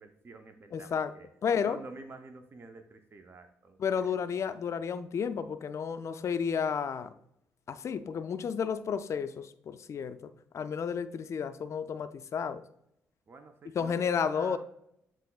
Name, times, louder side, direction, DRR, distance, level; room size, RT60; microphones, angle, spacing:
voice 1, 0.0-4.0 13.3-14.6, right 3 dB, 35° right, 6 dB, 0.6 m, -49 dB
voice 2, 0.7-1.1 1.4-1.8 3.8-7.1 7.7-10.2 10.5-12.6 13.8-14.6, left 6 dB, 50° left, 11 dB, 0.4 m, -32 dB
7.5 x 3.0 x 2.3 m, 0.76 s
supercardioid pair, 55°, 7 cm